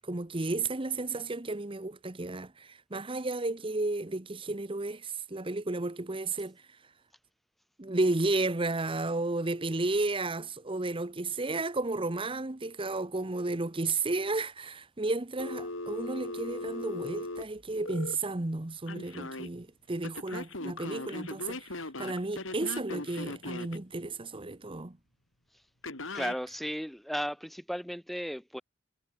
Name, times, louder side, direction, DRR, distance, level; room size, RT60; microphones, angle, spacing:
voice 1, 0.0-6.8 7.8-25.0, right 2 dB, 25° right, 1.0 m, -33 dB
Telephone, 15.4-18.2 18.9-19.5 20.0-23.8 25.8-26.4, left 2 dB, 75° left, 4.7 m, -39 dB
voice 2, 26.1-28.6, equal, ahead, 1.5 m, -35 dB
head